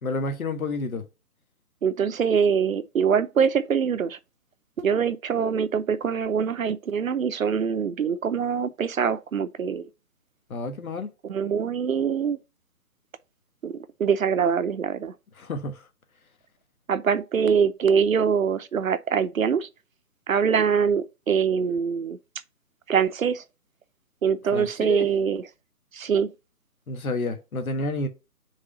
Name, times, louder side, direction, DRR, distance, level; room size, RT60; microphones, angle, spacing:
voice 1, 0.0-1.0 10.5-11.1 15.4-15.9 24.5-25.1 26.9-28.1, left 2 dB, 65° left, 1.5 m, -30 dB
voice 2, 1.8-4.2 4.8-9.9 11.2-12.4 13.6-15.1 16.9-19.7 20.3-22.2 22.9-23.4 24.2-25.4 25.9-26.3, right 7 dB, 60° right, 0.7 m, -24 dB
4.9 x 3.6 x 5.5 m
hypercardioid pair, 165°, 46 cm